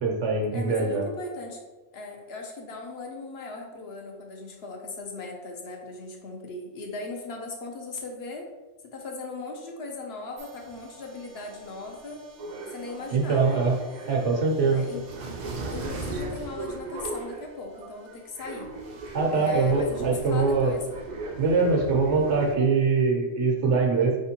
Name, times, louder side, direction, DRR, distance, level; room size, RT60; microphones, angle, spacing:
voice 1, 0.0-1.0 13.1-13.8 14.1-14.8 19.1-20.7 21.4-24.1, right 4 dB, 80° right, 1 dB, 1.1 m, -23 dB
voice 2, 0.5-1.6 1.9-8.5 8.8-12.2 12.7-13.6 14.7-15.1 15.7-18.7 19.3-20.8, left 3 dB, 65° left, 1 dB, 0.9 m, -38 dB
sound 1, 10.4-22.6, right 3 dB, 50° right, 0.6 m, -38 dB
4.4 x 3.5 x 2.9 m, 1.1 s
omnidirectional pair, 1.2 m